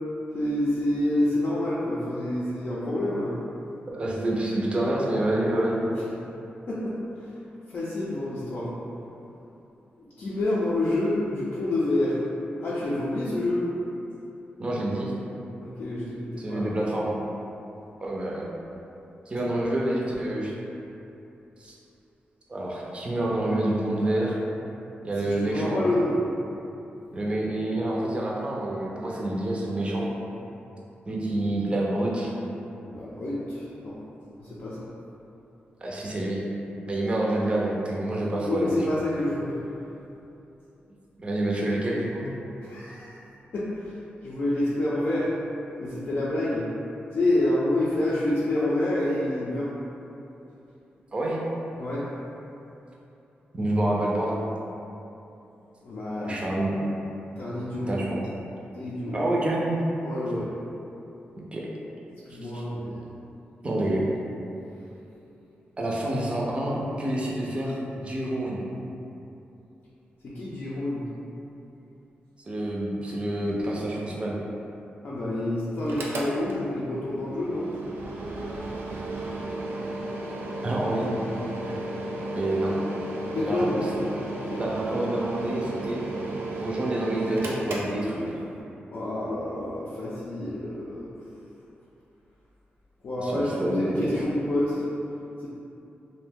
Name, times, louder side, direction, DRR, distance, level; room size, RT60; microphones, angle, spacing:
voice 1, 0.3-3.3 6.7-7.0 7.7-8.7 10.0-12.2 12.6-13.7 15.6-16.7 25.2-26.1 32.8-34.0 34.4-34.9 38.5-39.6 42.6-43.2 43.5-43.9 44.2-45.3 45.8-46.7 47.1-49.7 51.8-52.0 55.8-56.4 57.4-58.0 58.8-59.2 60.0-60.5 62.3-63.0 70.2-71.0 75.0-77.7 83.3-83.8 84.5-84.6 88.9-91.1 93.0-94.8, left 1 dB, 55° left, -9 dB, 0.4 m, -28 dB
voice 2, 3.9-5.8 14.6-15.1 16.4-17.1 18.0-18.5 19.3-20.5 21.6-21.7 22.5-24.4 25.0-25.9 27.1-30.1 31.1-32.3 35.8-36.4 36.9-38.9 41.2-42.3 51.1-51.4 53.5-54.4 56.2-56.7 57.9-58.3 59.1-59.8 61.4-61.6 62.5-62.6 63.6-64.0 65.8-68.6 72.5-74.3 80.6-81.1 81.7-81.8 82.4-82.8 83.4-83.9 84.6-86.0 86.6-88.4 93.2-94.3, right 1 dB, 30° right, -4 dB, 0.5 m, -27 dB
Mechanical fan, 75.8-88.6, right 2 dB, 85° right, 0.3 m, -34 dB
2.5 x 2.1 x 3.5 m, 2.8 s
wide cardioid pair, 105°, 4 cm